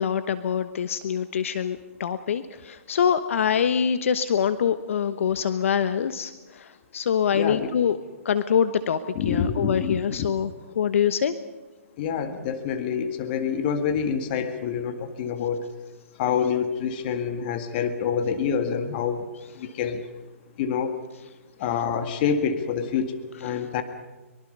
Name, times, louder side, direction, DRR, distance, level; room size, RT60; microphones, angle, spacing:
voice 1, 0.0-8.0 8.2-9.0 9.2-10.5 10.7-11.3, left 8 dB, 65° left, 11 dB, 1.1 m, -24 dB
voice 2, 7.3-7.7 9.2-10.3 12.0-15.6 16.1-19.3 19.5-20.0 20.6-21.0 21.6-23.8, left 7 dB, 40° left, 7 dB, 2.0 m, -27 dB
24.0 x 24.0 x 5.5 m, 1.2 s
hypercardioid pair, 135°, 8 cm